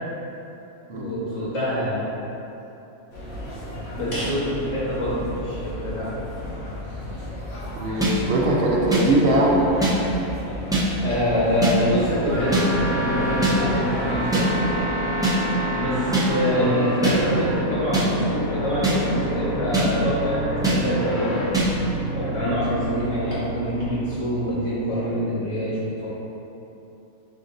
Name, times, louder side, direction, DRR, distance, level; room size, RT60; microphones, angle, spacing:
voice 1, 0.9-2.0 4.0-6.1 11.0-14.5 15.7-21.4 22.1-26.1, equal, 25° left, -9 dB, 0.8 m, -25 dB
sound 1, 3.1-14.8, equal, 80° left, 1.5 m, -34 dB
voice 2, 7.8-9.7 22.4-22.6, right 1 dB, 65° right, -3 dB, 0.8 m, -21 dB
sound 2, 8.0-8.1 8.9-9.0 9.8-9.9 10.7-10.8 11.6-11.7 12.5-12.6 13.4-13.5 14.3-14.4 15.2-15.3 16.1-16.2 17.0-17.1 17.9-18.0 18.8-19.0 19.7-19.9 20.6-20.8 21.5-21.7, right 3 dB, 5° right, 0.3 m, -21 dB
sound 3, 12.4-24.2, equal, 65° left, 1.2 m, -28 dB
5.0 x 2.6 x 3.9 m, 2.9 s
omnidirectional pair, 1.4 m